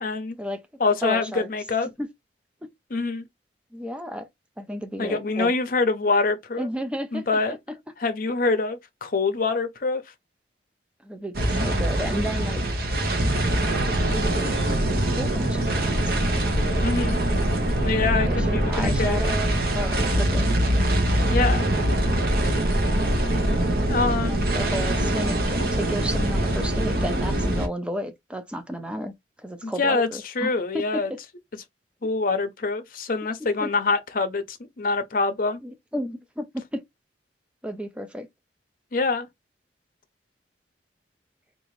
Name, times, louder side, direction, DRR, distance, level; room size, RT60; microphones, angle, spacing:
voice 1, 0.0-0.4 0.8-1.9 2.9-3.2 5.0-6.7 7.1-7.6 8.0-10.0 16.8-17.2 17.8-19.2 21.3-21.6 23.9-24.4 29.6-30.1 30.4-31.1 32.0-35.6 38.9-39.3, left 3 dB, 50° left, 0.6 m, -25 dB
voice 2, 1.0-1.5 2.0-2.1 3.7-4.3 4.6-5.5 6.6-7.3 11.0-12.6 14.1-16.2 18.2-20.5 24.2-31.0 33.6-33.7 35.6-36.8 37.6-38.3, equal, 5° right, 0.5 m, -33 dB
sound 1, 11.3-27.7, right 1 dB, 55° right, 0.8 m, -23 dB
3.7 x 2.5 x 3.1 m
head